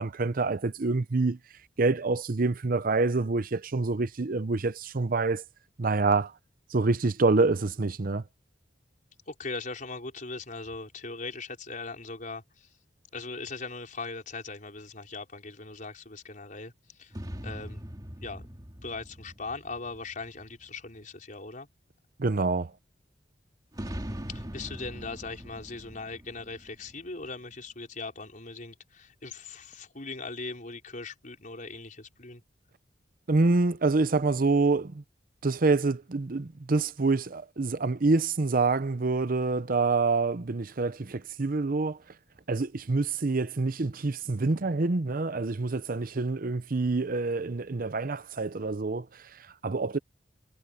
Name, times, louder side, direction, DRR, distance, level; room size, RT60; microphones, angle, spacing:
voice 1, 0.0-1.4 1.8-5.4 5.8-6.3 6.7-8.2 22.2-22.7 33.3-35.0 35.4-42.0 42.5-50.0, right 3 dB, 50° right, 0.7 m, -26 dB
voice 2, 9.3-12.7 13.1-17.2 17.4-17.8 18.2-18.5 18.8-21.7 24.3-32.4, left 3 dB, 45° left, 5.1 m, -40 dB
sound 1, 17.1-20.8 23.7-27.5, equal, 20° right, 2.3 m, -41 dB
head